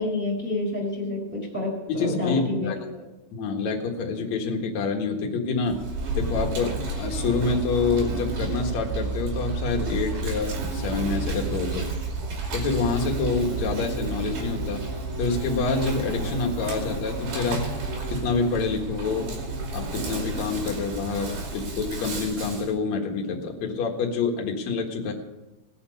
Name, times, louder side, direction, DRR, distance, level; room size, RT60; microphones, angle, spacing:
voice 1, 0.0-1.7 2.0-2.7 21.6-21.7, left 2 dB, 5° left, -2 dB, 3.9 m, -28 dB
voice 2, 1.9-2.8 3.3-5.8 6.1-11.9 12.5-14.8 15.2-17.6 18.1-19.3 19.7-25.1, left 4 dB, 55° left, 1 dB, 2.5 m, -27 dB
Insect, 5.7-22.7, right 3 dB, 65° right, 4.2 m, -31 dB
20.0 x 7.2 x 5.4 m, 1.0 s
omnidirectional pair, 4.7 m